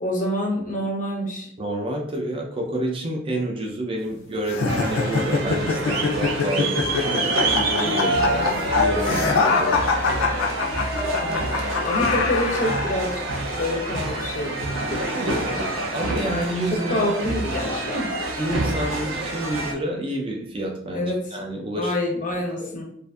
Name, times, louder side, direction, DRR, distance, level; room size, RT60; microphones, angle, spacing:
voice 1, 0.0-1.5 11.2-11.4 11.8-13.2 13.6-14.6 14.9-15.4 16.9-18.1 20.9-21.2 21.8-22.8, left 1 dB, 40° left, 1 dB, 0.5 m, -27 dB
voice 2, 1.6-9.9 15.1-17.1 18.4-21.9 22.6-22.7, right 1 dB, 25° right, 1 dB, 0.4 m, -29 dB
sound 1, 4.5-12.9, left 4 dB, 90° left, 0.4 m, -24 dB
sound 2, 4.7-19.7, right 1 dB, 85° right, 0.5 m, -26 dB
2.5 x 2.4 x 2.3 m, 0.68 s
head